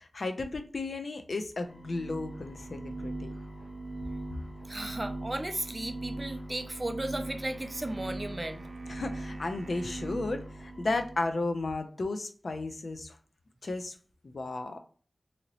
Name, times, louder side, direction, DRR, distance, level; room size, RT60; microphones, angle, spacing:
voice 1, 0.0-3.3 8.9-13.2 13.6-13.9 14.2-14.8, left 2 dB, 70° left, 0.4 m, -34 dB
sound 1, 1.6-11.3, right 2 dB, 20° left, 1.3 m, -40 dB
voice 2, 4.7-8.7, right 1 dB, 30° right, 0.4 m, -35 dB
sound 2, 7.2-10.2, right 2 dB, 90° right, 0.6 m, -54 dB
2.8 x 2.8 x 2.9 m
wide cardioid pair, 80°, 0 cm